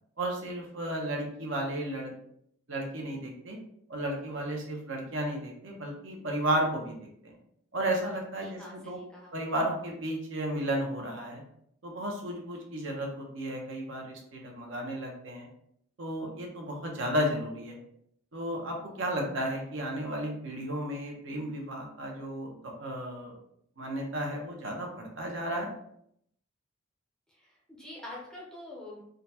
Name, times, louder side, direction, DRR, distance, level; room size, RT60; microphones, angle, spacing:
voice 1, 0.2-2.1 2.7-3.6 3.9-7.3 7.7-9.0 9.3-11.4 11.8-15.5 16.0-17.8 18.3-23.3 23.8-25.7, right 1 dB, 65° right, 0 dB, 0.8 m, -33 dB
voice 2, 8.4-9.4 27.3-29.0, left 1 dB, 5° left, -4 dB, 0.5 m, -46 dB
3.7 x 2.2 x 2.8 m, 0.71 s
head